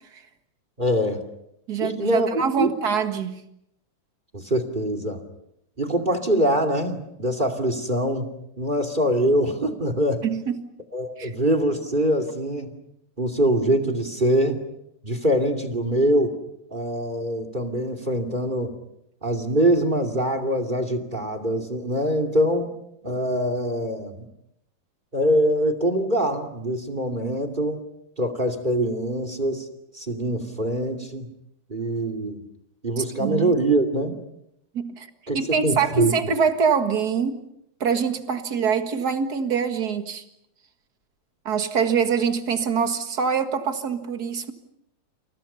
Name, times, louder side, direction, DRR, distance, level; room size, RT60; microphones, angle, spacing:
voice 1, 0.8-1.2 1.8-2.7 4.3-5.2 5.8-10.3 10.9-12.7 13.2-14.6 15.0-16.4 16.7-18.8 19.2-22.7 23.0-24.3 25.1-27.8 28.2-29.7 29.9-31.3 31.7-32.4 32.8-34.2 35.3-36.1, right 1 dB, 15° right, 10 dB, 2.0 m, -24 dB
voice 2, 1.7-3.4 10.2-10.6 11.2-11.3 33.0-33.5 34.7-35.1 35.3-37.4 37.8-40.2 41.4-44.5, right 6 dB, 40° right, 7 dB, 1.4 m, -24 dB
29.5 x 29.0 x 5.6 m, 0.78 s
omnidirectional pair, 4.2 m